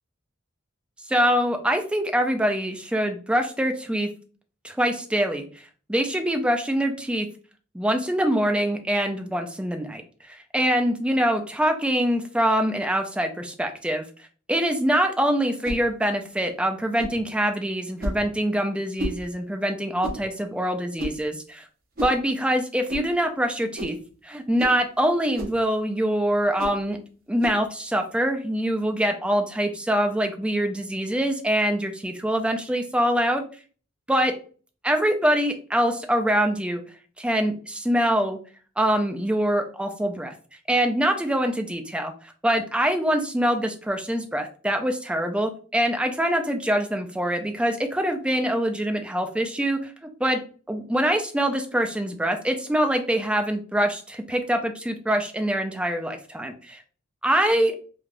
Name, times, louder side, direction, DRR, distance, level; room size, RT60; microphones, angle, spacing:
voice 1, 1.1-4.1 4.6-5.4 5.9-7.3 7.7-10.0 10.5-14.0 14.5-21.6 22.0-24.0 24.2-27.0 27.3-33.4 34.1-34.3 34.8-36.8 37.2-38.4 38.8-40.3 40.7-42.1 42.4-49.9 50.2-50.4 50.7-56.8 57.2-57.8, equal, 5° right, 5 dB, 0.3 m, -24 dB
sound 1, 15.6-15.8 17.0-17.2 18.0-18.2 19.0-19.2 20.0-20.2 21.0-21.2 22.0-22.2 22.9-23.1 23.8-24.0 24.6-24.8 25.3-25.6 26.6-26.8 27.4-27.6, equal, 45° right, 0.6 m, -32 dB
3.2 x 2.3 x 2.5 m, 0.40 s
head